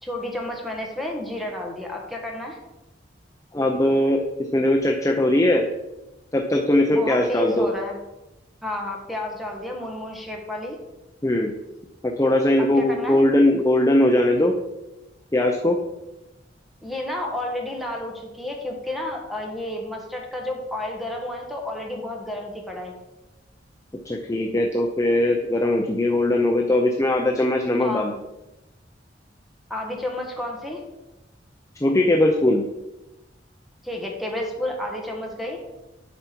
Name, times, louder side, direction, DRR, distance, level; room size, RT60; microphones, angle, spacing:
voice 1, 0.0-2.6 6.9-8.0 8.6-10.8 12.8-13.2 16.8-23.0 27.8-28.1 29.7-30.8 33.8-35.6, left 1 dB, ahead, 1 dB, 1.4 m, -31 dB
voice 2, 3.5-4.2 4.5-5.6 6.3-7.7 11.2-11.5 12.0-14.6 15.3-15.8 24.0-28.2 31.8-32.6, left 1 dB, 20° left, 2 dB, 0.6 m, -20 dB
8.4 x 5.8 x 4.5 m, 0.99 s
head